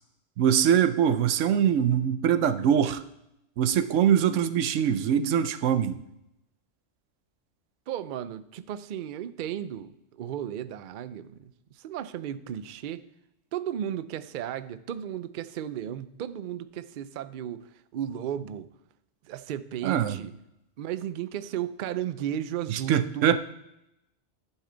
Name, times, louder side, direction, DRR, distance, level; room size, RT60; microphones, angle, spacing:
voice 1, 0.4-3.0 3.6-6.0 19.8-20.2 22.7-23.4, right 9 dB, 85° right, 12 dB, 1.0 m, -23 dB
voice 2, 7.9-13.0 13.5-18.7 19.2-20.3 20.8-23.4, right 10 dB, 60° right, 13 dB, 0.5 m, -35 dB
11.0 x 7.2 x 3.9 m, 0.84 s
omnidirectional pair, 1.2 m